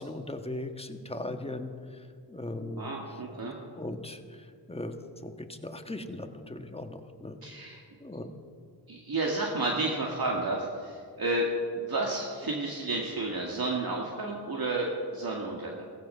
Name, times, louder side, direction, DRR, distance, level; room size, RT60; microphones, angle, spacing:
voice 1, 0.0-2.9 3.8-5.0 5.2-7.7 8.0-8.3, left 1 dB, 15° left, 6 dB, 1.4 m, -39 dB
voice 2, 2.8-3.5 7.4-7.8 8.9-15.8, right 2 dB, 55° right, -2 dB, 2.1 m, -31 dB
16.0 x 15.0 x 5.6 m, 2.1 s
cardioid pair, 65°, 43 cm